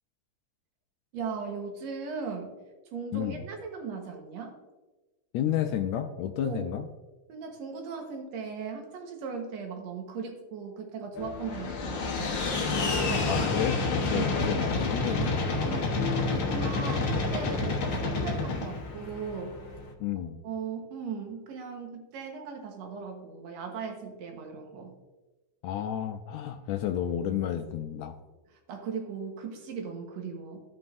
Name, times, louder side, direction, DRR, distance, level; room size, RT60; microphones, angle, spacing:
voice 1, 1.1-2.5 2.9-4.6 6.4-6.7 7.3-12.4 13.1-13.5 14.1-14.5 15.7-15.9 16.2-19.6 20.4-24.9 28.7-30.6, right 5 dB, 70° right, 2 dB, 2.3 m, -38 dB
voice 2, 3.1-3.4 5.3-6.9 13.2-15.7 20.0-20.4 25.6-28.2, left 9 dB, 80° left, 6 dB, 1.7 m, -31 dB
sound 1, 11.1-19.9, left 3 dB, 60° left, 1.3 m, -29 dB
16.0 x 5.5 x 2.6 m, 1.2 s
omnidirectional pair, 3.4 m